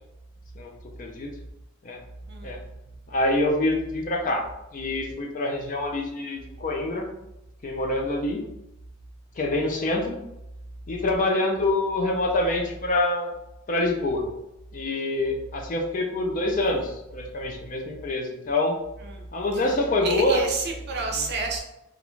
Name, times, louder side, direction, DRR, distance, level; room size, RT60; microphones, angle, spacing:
voice 1, 1.0-1.3 1.8-2.0 2.4-2.6 3.1-4.4 4.7-7.1 7.6-8.4 9.4-10.2 10.9-13.3 13.7-14.3 14.7-18.7 19.3-20.4, left 2 dB, 40° left, 2 dB, 0.4 m, -26 dB
voice 2, 2.3-2.6 19.0-19.3 19.5-19.6 20.0-21.6, right 3 dB, 55° right, 1 dB, 0.5 m, -29 dB
2.4 x 2.1 x 3.0 m, 0.88 s
head